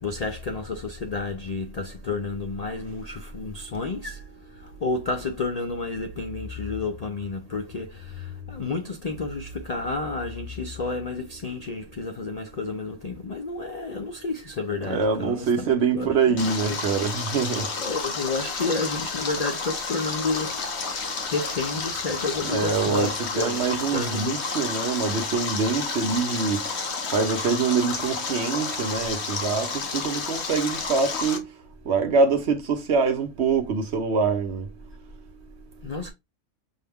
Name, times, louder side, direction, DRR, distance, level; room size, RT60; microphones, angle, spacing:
voice 1, 0.0-16.4 16.7-16.8 17.8-20.7 21.3-24.4 35.8-36.1, left 3 dB, 75° left, 0.3 m, -31 dB
voice 2, 14.8-17.7 22.5-26.6 27.1-31.5 31.9-34.7, right 5 dB, 60° right, 0.9 m, -24 dB
Stream, 16.4-31.4, left 4 dB, 55° left, 1.1 m, -31 dB
5.5 x 2.2 x 3.4 m
omnidirectional pair, 1.4 m